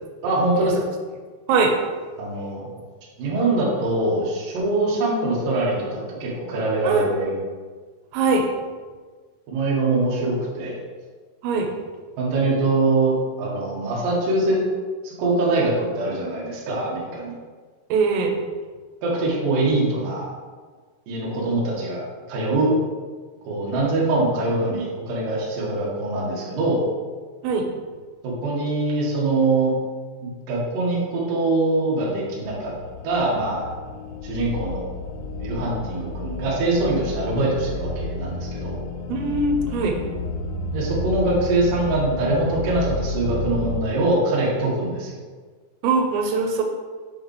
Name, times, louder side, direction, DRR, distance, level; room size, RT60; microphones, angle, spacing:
voice 1, 0.2-0.8 2.2-2.7 3.2-7.3 9.5-10.8 12.2-14.6 15.0-17.4 19.0-20.3 21.1-22.7 23.5-26.8 28.2-29.7 30.2-32.7 33.0-33.7 34.2-34.9 35.4-38.8 40.7-45.2, right 2 dB, 65° right, -5 dB, 2.3 m, -23 dB
voice 2, 8.1-8.5 11.4-11.7 17.9-18.3 27.4-27.7 39.1-40.0 45.8-46.6, right 4 dB, 85° right, 3 dB, 3.3 m, -21 dB
sound 1, 32.4-43.8, left 2 dB, 90° left, 3.3 m, -31 dB
7.6 x 4.8 x 3.2 m, 1.5 s
omnidirectional pair, 5.9 m